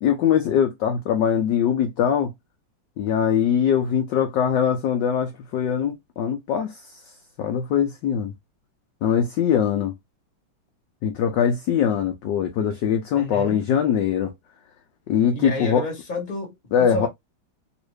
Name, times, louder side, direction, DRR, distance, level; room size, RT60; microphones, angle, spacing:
voice 1, 0.0-2.3 3.0-7.0 7.4-8.3 9.0-9.9 11.0-14.3 15.1-15.9 16.7-17.1, left 8 dB, 70° left, 1.1 m, -22 dB
voice 2, 13.1-13.6 15.3-16.6 16.9-17.1, left 2 dB, 25° left, 1.3 m, -30 dB
3.1 x 2.9 x 3.1 m
omnidirectional pair, 2.4 m